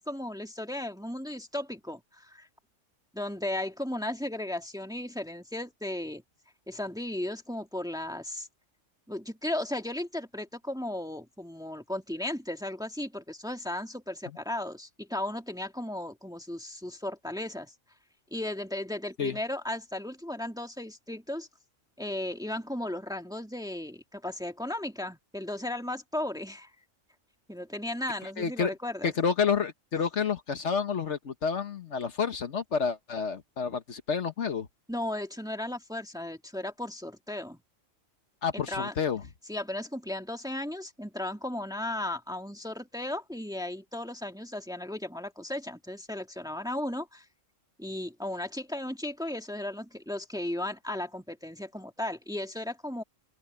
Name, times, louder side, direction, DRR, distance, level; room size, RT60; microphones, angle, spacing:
voice 1, 0.0-2.5 3.1-6.2 6.7-8.5 9.1-17.7 18.3-21.5 22.0-26.7 27.5-29.1 34.9-37.6 38.5-38.9 39.5-47.2 47.8-53.0, left 1 dB, 5° right, 1.7 m, -35 dB
voice 2, 28.4-28.7 29.0-34.7 38.4-39.2, left 6 dB, 60° left, 1.4 m, -29 dB
open air
omnidirectional pair, 1.4 m